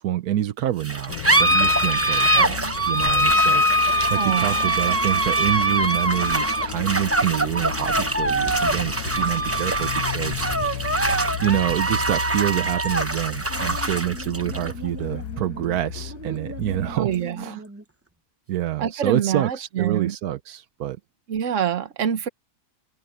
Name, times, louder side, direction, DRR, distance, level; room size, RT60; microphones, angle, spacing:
voice 1, 0.0-2.5 2.9-10.9 11.4-17.1 17.4-17.6 18.5-21.0, right 12 dB, 85° right, 1.3 m, -27 dB
sound 1, 0.8-17.8, right 1 dB, 15° right, 0.7 m, -23 dB
sound 2, 1.1-17.2, left 12 dB, 75° left, 1.0 m, -35 dB
voice 2, 2.4-2.8 4.2-4.6 17.0-17.6 18.8-20.1 21.3-22.3, right 9 dB, 60° right, 1.4 m, -26 dB
omnidirectional pair, 1.6 m